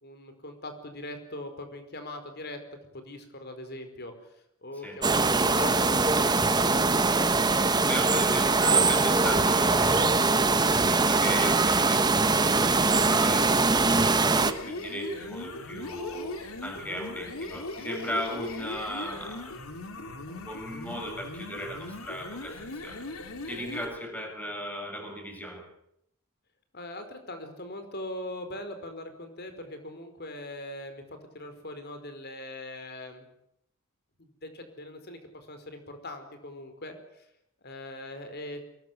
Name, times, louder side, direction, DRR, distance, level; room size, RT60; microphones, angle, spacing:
voice 1, 0.0-2.6 2.9-4.1 4.6-5.9 26.7-31.0 31.3-33.3 34.2-36.9 37.6-38.6, left 1 dB, 50° left, 8 dB, 4.8 m, -40 dB
sound 1, 5.0-14.5, right 3 dB, 20° right, 1.2 m, -22 dB
voice 2, 7.2-10.2 10.9-16.3 16.6-19.5 20.3-23.1 23.5-25.6, equal, 5° left, 2 dB, 6.6 m, -37 dB
sound 2, 14.2-24.0, left 2 dB, 75° left, 3.1 m, -39 dB
23.0 x 20.0 x 9.4 m, 0.76 s
head